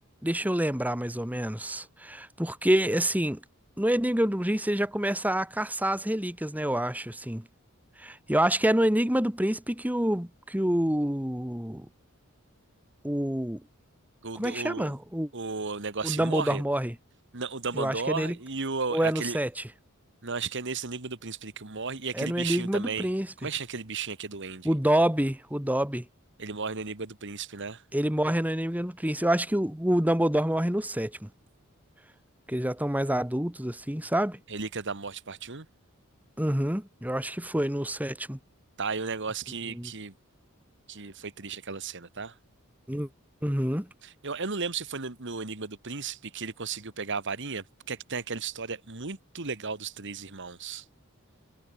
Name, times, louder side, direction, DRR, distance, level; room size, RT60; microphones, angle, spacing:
voice 1, 0.2-3.4 3.8-7.5 8.0-11.9 13.0-13.6 14.3-15.3 16.0-16.9 17.7-18.4 18.9-19.6 22.1-23.3 24.6-26.1 27.9-31.3 32.5-34.4 36.4-38.4 39.7-39.9 42.9-43.1 43.4-43.9, right 1 dB, 5° right, 1.7 m, -27 dB
voice 2, 14.2-14.9 15.3-16.6 17.3-19.4 20.2-23.1 23.4-24.7 26.4-27.8 34.5-35.7 38.8-40.1 40.9-42.3 44.0-50.8, right 4 dB, 55° right, 1.8 m, -34 dB
head